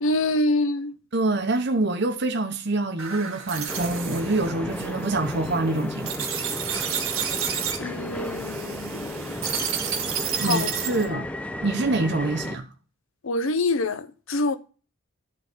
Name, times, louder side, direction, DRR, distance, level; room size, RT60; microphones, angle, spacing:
voice 1, 0.0-0.9 7.8-9.5 10.4-10.7 11.1-11.3 13.2-14.6, left 2 dB, 70° left, 0.7 m, -26 dB
voice 2, 1.1-6.3 10.4-11.2 11.6-12.7, right 2 dB, 50° right, 0.8 m, -25 dB
sound 1, 3.0-11.1, right 8 dB, 75° right, 1.6 m, -31 dB
sound 2, 3.7-12.6, left 1 dB, 5° left, 0.5 m, -34 dB
11.0 x 3.9 x 6.0 m
head